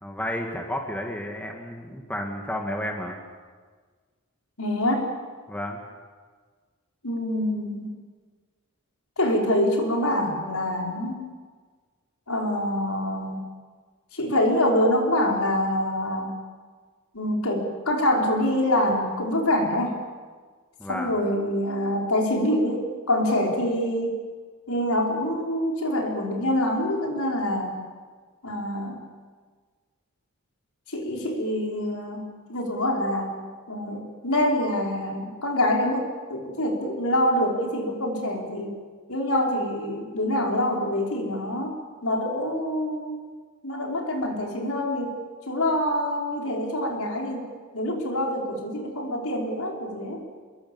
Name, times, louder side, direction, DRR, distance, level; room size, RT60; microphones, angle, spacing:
voice 1, 0.0-3.2 5.5-5.8 20.8-21.1, left 1 dB, 5° left, 2 dB, 2.2 m, -32 dB
voice 2, 4.6-5.1 7.0-7.9 9.2-11.3 12.3-13.4 14.1-16.3 17.1-20.0 20.9-24.2 24.7-27.8 28.4-29.0 30.9-33.4 33.7-38.8 39.1-41.7 42.0-43.3 43.6-45.2 45.5-47.5 47.7-50.2, left 1 dB, 80° left, 0 dB, 5.2 m, -25 dB
27.5 x 22.5 x 7.3 m, 1.5 s
head